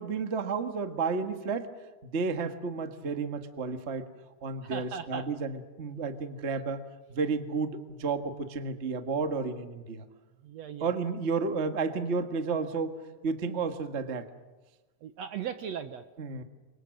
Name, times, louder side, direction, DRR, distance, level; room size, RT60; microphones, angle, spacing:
voice 1, 0.0-1.7 2.0-4.1 4.4-6.8 7.1-10.0 10.8-14.2 16.2-16.4, right 4 dB, 40° right, 7 dB, 1.0 m, -32 dB
voice 2, 4.7-5.3 10.4-10.9 15.0-16.0, right 8 dB, 70° right, 9 dB, 1.8 m, -37 dB
29.5 x 25.0 x 6.5 m, 1.2 s
omnidirectional pair, 3.8 m